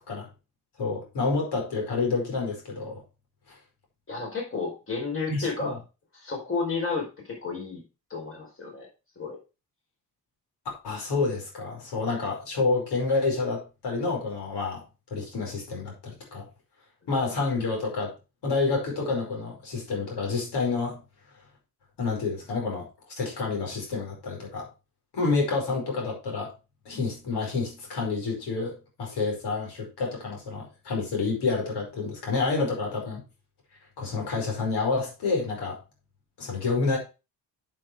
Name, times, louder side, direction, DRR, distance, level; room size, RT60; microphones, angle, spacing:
voice 1, 0.8-3.0 5.3-5.8 10.8-14.8 15.1-16.4 17.1-18.1 18.4-21.0 22.0-22.9 23.2-24.7 25.1-26.5 26.8-33.2 34.0-35.8 36.4-37.0, left 4 dB, 80° left, -1 dB, 5.3 m, -28 dB
voice 2, 4.1-5.8 6.2-7.8 8.1-8.9 9.2-9.4, left 4 dB, 30° left, 0 dB, 4.9 m, -32 dB
7.7 x 7.6 x 4.8 m, 0.29 s
cardioid pair, 120°, 40 cm